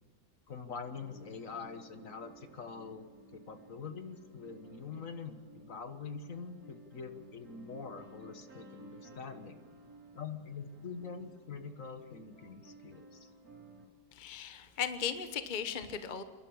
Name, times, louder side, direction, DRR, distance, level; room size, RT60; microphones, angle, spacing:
voice 1, 0.5-3.0 3.3-9.6 10.1-13.3, left 5 dB, 50° left, 9 dB, 1.6 m, -44 dB
sound 1, 0.9-13.9, right 1 dB, 55° right, 3.7 m, -56 dB
voice 2, 14.1-16.2, left 7 dB, 35° left, 9 dB, 1.0 m, -37 dB
28.5 x 11.5 x 8.6 m, 1.5 s
omnidirectional pair, 1.8 m